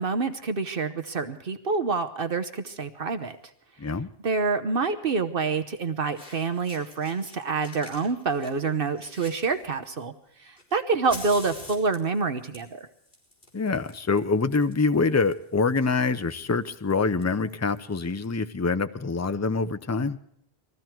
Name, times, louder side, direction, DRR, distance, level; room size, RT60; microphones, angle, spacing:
voice 1, 0.0-3.4 4.2-10.1 10.4-12.9, right 4 dB, 60° right, 9 dB, 1.1 m, -27 dB
Fire, 3.1-3.3 4.7-4.8 5.8-5.9 6.1-7.3 7.6-10.0 10.6-18.2, left 2 dB, 50° left, 4.9 m, -47 dB
voice 2, 13.5-20.2, left 4 dB, 20° left, 11 dB, 0.5 m, -25 dB
21.0 x 15.0 x 4.5 m, 0.72 s
omnidirectional pair, 1.0 m